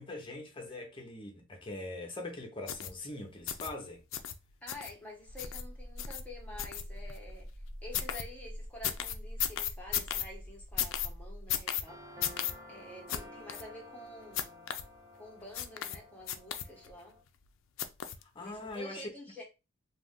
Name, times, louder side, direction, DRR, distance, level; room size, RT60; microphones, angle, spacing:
voice 1, 0.0-4.0 18.2-19.1, left 2 dB, 25° left, 0.7 m, -42 dB
sound 1, 2.7-2.9 3.5-3.7 4.1-4.3 4.7-4.9 5.4-5.6 6.0-6.2 6.6-7.2 7.9-8.2 8.8-10.2 10.8-11.1 11.5-11.8 12.2-12.5 13.1-13.2 13.5-13.6 14.3-14.8 15.5-16.0 16.3-16.9 17.8-18.2 18.7-18.8, left 10 dB, 70° left, 0.4 m, -34 dB
voice 2, 4.6-7.5 7.8-12.4 12.7-14.8 15.1-17.2 18.4-19.4, left 1 dB, 5° left, 1.0 m, -49 dB
sound 2, 5.3-11.8, equal, 45° right, 0.9 m, -45 dB
sound 3, 11.9-17.2, left 1 dB, 15° right, 0.5 m, -52 dB
2.4 x 2.3 x 3.5 m
head